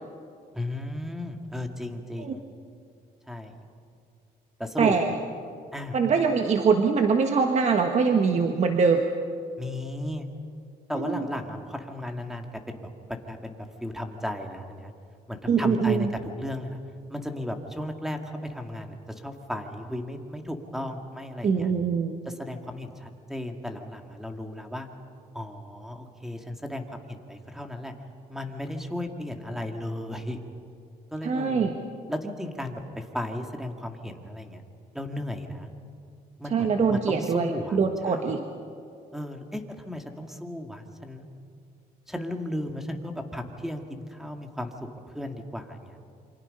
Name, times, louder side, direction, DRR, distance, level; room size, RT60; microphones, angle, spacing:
voice 1, 0.5-2.4 3.3-3.5 4.6-5.0 5.7-6.0 9.6-10.3 10.9-12.9 13.3-13.6 13.8-14.9 15.3-16.1 16.4-16.8 17.1-21.7 22.3-24.9 25.3-27.9 28.3-30.4 31.1-31.7 32.1-34.6 34.9-35.7 36.4-37.8 38.1-38.3 39.1-41.3 42.1-44.7 45.1-46.1, left 1 dB, ahead, 4 dB, 2.2 m, -35 dB
voice 2, 4.8-5.1 5.9-9.0 10.9-11.2 15.5-16.1 21.4-22.2 31.2-31.8 36.5-38.4, right 5 dB, 40° right, 4 dB, 1.4 m, -23 dB
28.0 x 24.5 x 5.5 m, 2.4 s
cardioid pair, 110°, 17 cm